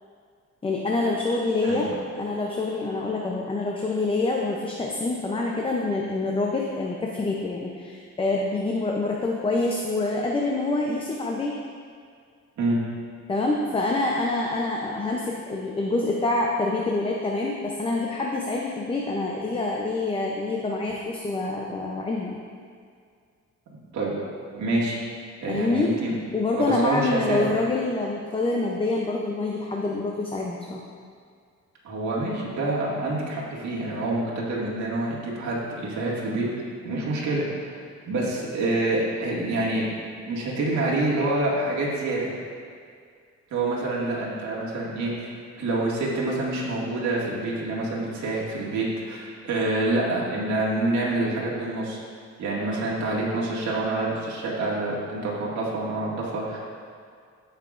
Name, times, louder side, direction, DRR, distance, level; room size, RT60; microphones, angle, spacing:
voice 1, 0.6-1.9 2.2-11.5 13.3-22.4 25.5-25.9 26.3-30.8, left 2 dB, 20° left, -1 dB, 0.6 m, -26 dB
voice 2, 24.5-25.0 25.4-26.1 26.6-27.5 31.8-36.5 36.8-37.8 38.1-39.9 40.3-42.3 43.5-45.3 45.6-52.0 52.4-56.6, right 2 dB, 70° right, -5 dB, 2.0 m, -27 dB
15.5 x 5.7 x 2.5 m, 2.2 s
cardioid pair, 155°, 29 cm